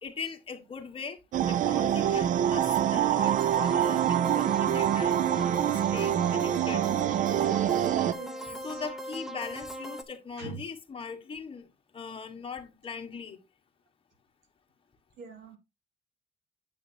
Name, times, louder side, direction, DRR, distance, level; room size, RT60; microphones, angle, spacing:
voice 1, 0.0-1.2 1.5-2.7 2.9-6.8 8.6-11.6 11.9-13.4, left 5 dB, 30° left, 1.7 m, -40 dB
sound 1, 1.3-8.1, right 10 dB, 50° right, 0.5 m, -25 dB
sound 2, 3.2-10.0, right 1 dB, ahead, 0.9 m, -39 dB
voice 2, 7.7-8.8 10.4-10.6 15.2-15.6, right 4 dB, 75° right, 2.6 m, -44 dB
8.5 x 7.6 x 2.9 m
cardioid pair, 110°, 17 cm